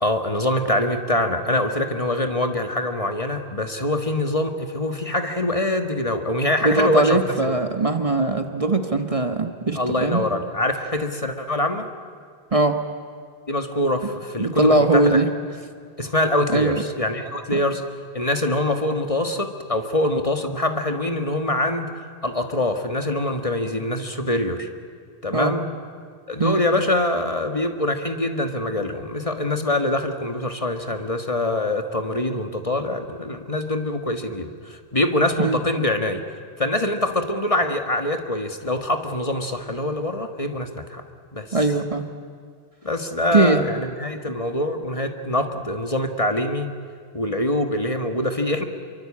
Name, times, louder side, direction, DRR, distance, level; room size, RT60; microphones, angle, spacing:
voice 1, 0.0-7.5 9.8-11.9 13.5-15.2 16.0-17.8 18.1-21.9 22.2-24.7 25.2-25.7 26.3-36.2 36.6-41.0 41.3-41.6 42.8-46.7 47.1-48.6, left 1 dB, 35° left, 6 dB, 1.6 m, -24 dB
voice 2, 6.6-10.2 12.5-12.8 14.4-15.3 16.5-16.8 25.3-25.5 26.4-26.6 35.4-35.6 41.5-42.0 43.3-43.6, right 2 dB, 35° right, 7 dB, 1.4 m, -20 dB
27.0 x 23.5 x 8.6 m, 2.1 s
omnidirectional pair, 1.1 m